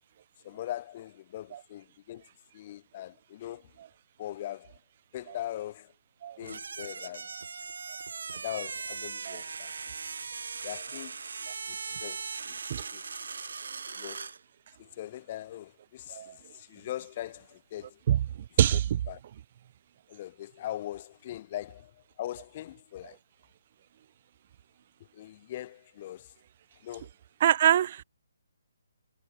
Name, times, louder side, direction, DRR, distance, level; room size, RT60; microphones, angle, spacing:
voice 1, 0.4-2.2 2.5-3.7 4.2-4.8 5.1-5.9 6.4-7.3 8.3-9.7 10.6-11.2 11.7-12.6 12.9-13.0 13.9-14.3 14.8-18.0 19.1-19.2 20.1-23.2 25.1-26.3 26.8-27.1, left 13 dB, 25° left, 3.4 m, -41 dB
sound 1, 6.4-14.4, right 5 dB, 60° right, 6.2 m, -39 dB
voice 2, 18.6-19.0 27.4-28.0, right 10 dB, 30° right, 2.2 m, -24 dB
hypercardioid pair, 175°, 0 cm